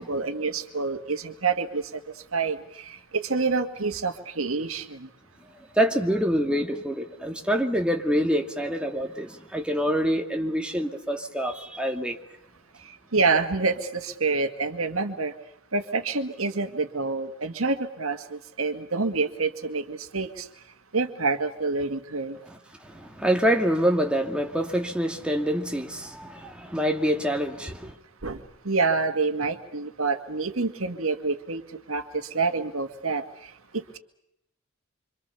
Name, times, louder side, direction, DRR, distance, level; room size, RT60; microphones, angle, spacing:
voice 1, 0.0-2.0 2.3-5.1 13.1-15.3 15.7-20.5 20.9-22.4 28.2-28.4 28.7-31.6 31.9-33.2 33.7-34.0, right 4 dB, 85° right, 1.9 m, -27 dB
voice 2, 5.8-12.2 22.5-22.6 22.8-27.9, equal, 5° right, 2.3 m, -26 dB
26.5 x 26.0 x 7.0 m
head